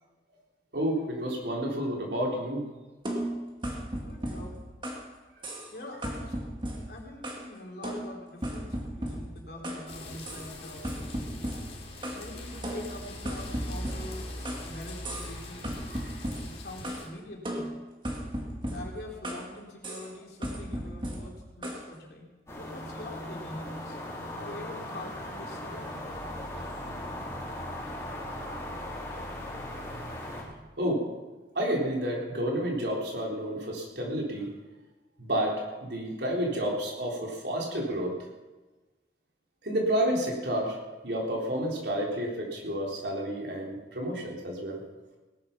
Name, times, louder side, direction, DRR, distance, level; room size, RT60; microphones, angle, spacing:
voice 1, 0.7-2.6 5.4-5.5 15.9-16.1 30.8-31.0 31.6-34.5 35.2-38.1 39.6-40.8 41.0-44.8, equal, 70° right, -1 dB, 3.8 m, -30 dB
sound 1, 3.1-5.1 5.4-5.8 6.0-7.5 7.8-9.9 10.3-10.5 10.8-12.3 12.6-14.7 15.0-15.4 15.6-17.1 17.5-19.5 19.8-20.1 20.4-21.9, equal, 25° right, 2.2 m, -36 dB
voice 2, 3.9-4.6 5.7-6.3 6.9-11.6 12.1-15.8 16.4-17.8 18.6-24.0 24.4-25.9, left 1 dB, 60° left, 0 dB, 3.3 m, -44 dB
sound 2, 9.9-17.1, left 1 dB, 35° left, 2.7 m, -41 dB
sound 3, 22.5-30.4, left 1 dB, 15° left, 3.7 m, -38 dB
18.0 x 11.0 x 5.9 m, 1.2 s
head